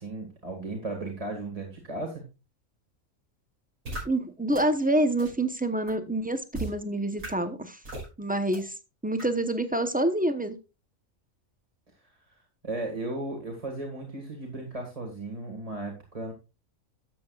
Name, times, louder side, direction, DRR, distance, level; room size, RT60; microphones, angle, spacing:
voice 1, 0.0-2.2 12.3-12.4 12.6-16.3, right 2 dB, 25° right, 0 dB, 1.8 m, -35 dB
sound 1, 3.9-4.0 4.5-4.6 5.2-5.3 5.9-6.0 6.5-6.7 7.2-7.3 7.9-8.1 8.5-8.6 9.2-9.3, right 2 dB, 80° right, 6.4 m, -35 dB
voice 2, 4.0-7.8 8.2-8.7 9.0-10.6, right 1 dB, 10° right, 9 dB, 0.6 m, -27 dB
12.5 x 7.6 x 2.4 m, 0.28 s
omnidirectional pair, 1.4 m